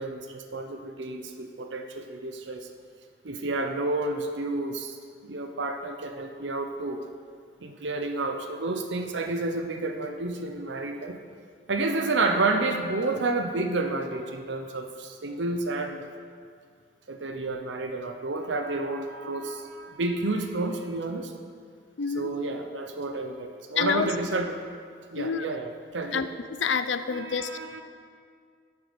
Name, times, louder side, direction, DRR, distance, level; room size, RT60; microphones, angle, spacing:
voice 1, 0.0-2.7 3.2-4.9 5.2-7.0 7.6-11.2 11.7-16.1 17.1-21.3 22.1-24.6 25.1-26.3 27.1-27.8, right 2 dB, 80° right, 5 dB, 0.8 m, -30 dB
voice 2, 22.0-22.3 23.8-24.1 25.2-25.5 26.1-27.5, left 6 dB, 90° left, 11 dB, 0.6 m, -28 dB
9.5 x 8.0 x 6.9 m, 2.1 s
head